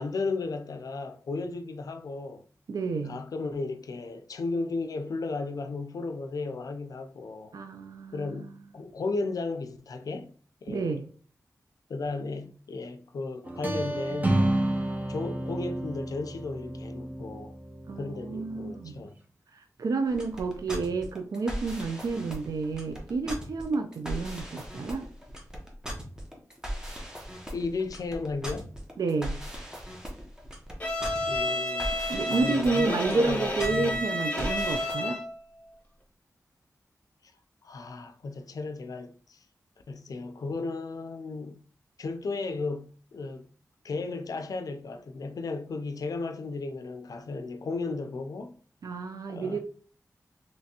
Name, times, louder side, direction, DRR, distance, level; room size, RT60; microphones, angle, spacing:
voice 1, 0.0-2.4 3.0-7.5 8.1-10.3 10.6-10.9 11.9-14.5 15.1-17.5 18.0-19.1 27.5-28.7 31.3-31.9 32.3-34.0 37.6-39.4 39.9-41.6 42.0-43.5 43.8-48.6 49.3-49.6, left 3 dB, 75° left, 0.4 m, -35 dB
voice 2, 2.7-3.2 7.5-8.5 10.7-11.1 17.9-19.0 19.5-25.1 29.0-29.4 32.1-35.2 48.8-49.6, right 4 dB, 80° right, 0.4 m, -30 dB
sound 1, 13.5-19.1, right 1 dB, 25° right, 0.6 m, -31 dB
sound 2, 20.1-34.9, equal, 10° right, 1.0 m, -39 dB
Bowed string instrument, 30.8-35.4, left 1 dB, 25° left, 1.0 m, -30 dB
3.3 x 3.0 x 2.8 m
wide cardioid pair, 65°, 6 cm